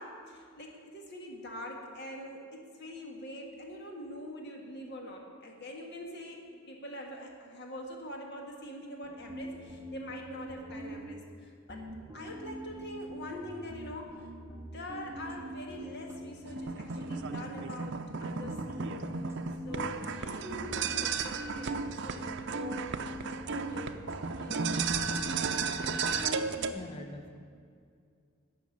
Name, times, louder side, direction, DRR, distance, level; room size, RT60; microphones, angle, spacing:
voice 1, 0.0-11.9 12.1-14.3 14.6-19.2 19.6-22.9 23.5-24.1 24.3-25.1, left 1 dB, 50° left, 1 dB, 1.7 m, -44 dB
sound 1, 9.0-11.4 11.7-17.8 18.1-24.2 24.5-26.7, equal, 10° right, 1.0 m, -44 dB
sound 2, 16.5-26.7, right 5 dB, 55° right, 0.6 m, -34 dB
voice 2, 26.3-27.3, left 1 dB, 25° left, 3 dB, 1.0 m, -45 dB
14.0 x 6.1 x 9.7 m, 2.2 s
head